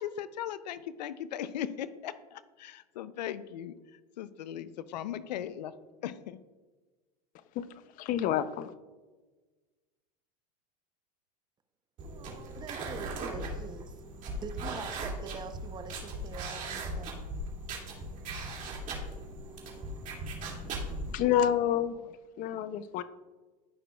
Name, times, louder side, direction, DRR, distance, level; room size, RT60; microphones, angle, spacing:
voice 1, 0.0-3.7 4.2-5.7 6.0-6.4, left 10 dB, 85° left, 0.5 m, -38 dB
voice 2, 8.0-8.7 20.6-23.0, left 10 dB, 40° left, 0.6 m, -29 dB
voice 3, 12.0-14.0 14.4-17.2, right 5 dB, 20° right, 0.7 m, -44 dB
sound 1, 12.0-21.1, right 2 dB, 40° right, 2.3 m, -38 dB
14.5 x 5.9 x 2.3 m
supercardioid pair, 120°, 21 cm